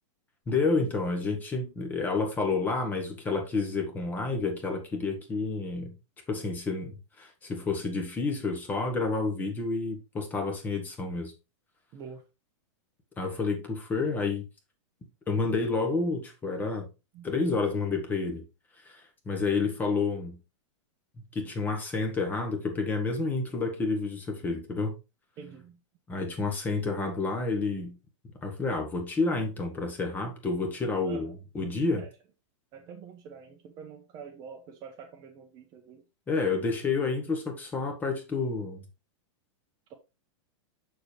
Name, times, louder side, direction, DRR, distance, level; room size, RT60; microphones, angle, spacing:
voice 1, 0.5-6.0 6.3-11.3 13.2-14.4 15.3-16.9 17.2-18.5 18.8-20.4 21.2-24.9 26.1-28.0 28.4-32.1 36.3-38.8, left 3 dB, 10° left, 1.3 m, -29 dB
voice 2, 25.4-25.8 31.0-31.3 32.0-32.1 32.7-36.0 39.9-40.0, right 6 dB, 25° right, 0.9 m, -46 dB
6.8 x 6.7 x 3.3 m
supercardioid pair, 170°, 16 cm